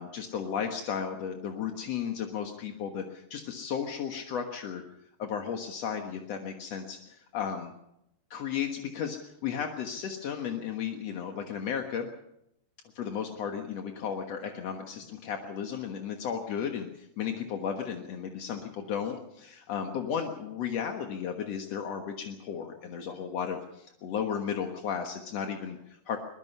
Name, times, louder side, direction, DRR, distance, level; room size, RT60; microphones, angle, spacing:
voice 1, 0.0-4.8 5.2-7.7 8.3-12.1 13.0-26.2, left 7 dB, 60° left, 4 dB, 1.8 m, -34 dB
22.5 x 21.5 x 5.5 m, 0.83 s
omnidirectional pair, 4.7 m